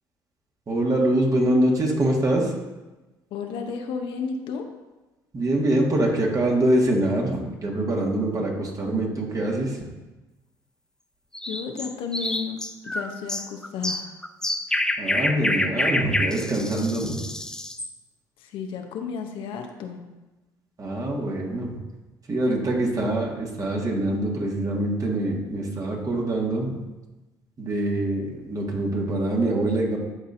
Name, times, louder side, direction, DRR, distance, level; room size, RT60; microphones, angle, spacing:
voice 1, 0.7-2.5 5.3-9.8 15.0-17.3 20.8-21.8 22.3-26.8 27.6-30.0, right 1 dB, 40° right, -1 dB, 1.7 m, -24 dB
voice 2, 3.3-4.7 11.5-12.6 12.8-14.1 18.4-20.0, left 6 dB, 70° left, 4 dB, 0.8 m, -32 dB
sound 1, 11.3-17.9, left 1 dB, 5° left, 0.5 m, -27 dB
11.5 x 4.1 x 2.6 m, 1.1 s
supercardioid pair, 65°, 9 cm